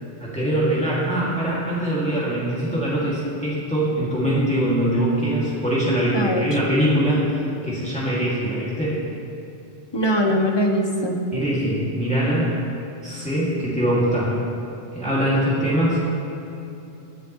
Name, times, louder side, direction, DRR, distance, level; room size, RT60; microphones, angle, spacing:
voice 1, 0.2-9.0 11.3-12.5 13.0-14.4 14.9-16.0, right 1 dB, 5° left, -8 dB, 2.1 m, -22 dB
voice 2, 6.1-6.6 9.9-11.2, equal, 25° left, 3 dB, 0.8 m, -21 dB
19.0 x 7.0 x 3.0 m, 2.8 s
omnidirectional pair, 1.1 m